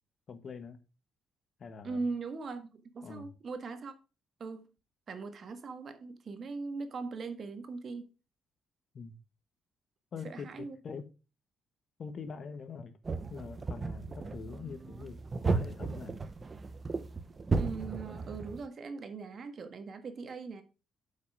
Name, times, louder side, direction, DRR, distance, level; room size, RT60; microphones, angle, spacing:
voice 1, 0.3-0.8 1.6-2.0 3.0-3.3 8.9-9.2 10.1-11.1 12.0-12.9 13.3-15.2 15.5-16.2, left 5 dB, 50° left, 1.4 m, -44 dB
voice 2, 1.8-3.9 4.4-4.7 5.1-8.1 10.2-10.8 17.4-20.6, right 4 dB, 50° right, 1.6 m, -40 dB
sound 1, 13.0-18.6, right 3 dB, 30° right, 0.9 m, -35 dB
8.2 x 5.6 x 4.9 m
cardioid pair, 90°, 0 cm